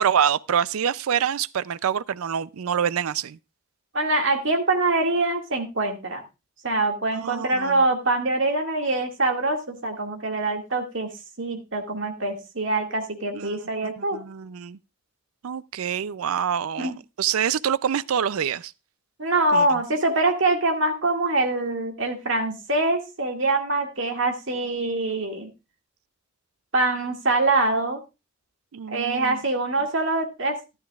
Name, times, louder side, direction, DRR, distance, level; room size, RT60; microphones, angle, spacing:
voice 1, 0.0-3.4 7.2-7.8 13.3-14.8 15.4-18.7 19.5-19.8 28.7-29.4, right 8 dB, 75° right, 0.4 m, -26 dB
voice 2, 3.9-6.2 6.6-14.2 16.8-16.9 19.2-25.5 26.7-28.0 28.9-30.6, right 2 dB, 55° right, 2.1 m, -24 dB
12.5 x 12.0 x 2.4 m
head